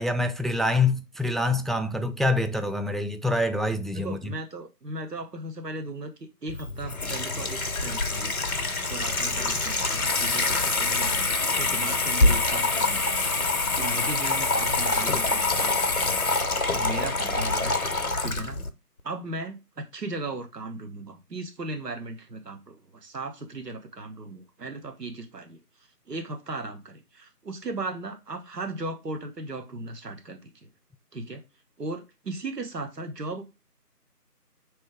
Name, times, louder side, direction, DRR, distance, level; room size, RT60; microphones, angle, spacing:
voice 1, 0.0-4.3, left 2 dB, ahead, 0.3 m, -26 dB
voice 2, 3.9-13.0 13.8-16.1 16.7-17.8 18.2-18.6 19.0-25.6 26.1-30.5 31.1-31.4 31.8-33.4, right 2 dB, 80° right, 0.9 m, -37 dB
Water tap faucet / Sink (filling or washing), 6.5-18.7, left 3 dB, 60° left, 0.6 m, -25 dB
4.4 x 3.1 x 3.3 m
figure-of-eight pair, 175°, 48 cm